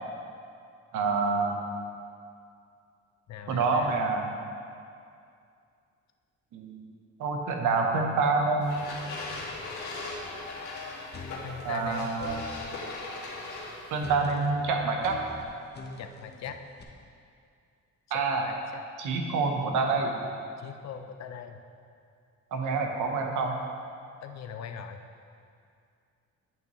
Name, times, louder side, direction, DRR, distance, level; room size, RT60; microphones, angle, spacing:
voice 1, 0.9-1.6 3.5-4.3 6.5-6.8 7.2-8.8 11.6-12.4 13.9-15.2 18.1-18.5 19.0-20.1 22.5-23.6, right 4 dB, 80° right, 2 dB, 1.0 m, -27 dB
voice 2, 3.3-4.1 11.4-12.1 16.0-16.6 18.1-18.8 20.6-21.6 24.2-25.0, left 8 dB, 60° left, 7 dB, 0.6 m, -41 dB
sound 1, 8.6-14.1, left 3 dB, 80° left, 1.4 m, -39 dB
sound 2, 11.1-12.7 14.0-16.8, left 3 dB, 35° left, 0.9 m, -44 dB
10.5 x 5.7 x 3.1 m, 2.4 s
cardioid pair, 90°, 30 cm